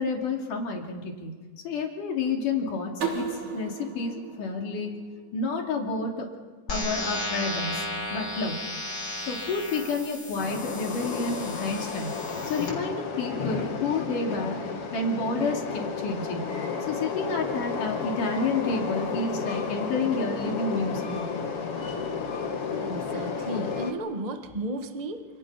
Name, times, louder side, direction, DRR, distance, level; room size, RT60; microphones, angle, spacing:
voice 1, 0.0-1.3 1.6-4.9 5.3-6.3 6.7-8.6 9.3-12.1 12.4-14.6 14.9-16.4 16.9-21.3, left 3 dB, 85° left, 1 dB, 4.5 m, -30 dB
sound 1, 3.0-5.8, right 5 dB, 70° right, 4.6 m, -35 dB
sound 2, 6.7-12.7, left 1 dB, 25° left, 5.4 m, -35 dB
Train, 10.4-23.9, left 5 dB, 50° left, 2.7 m, -32 dB
voice 2, 22.8-25.2, right 1 dB, 40° right, 6 dB, 0.5 m, -34 dB
29.0 x 28.0 x 5.8 m, 1.3 s
omnidirectional pair, 3.6 m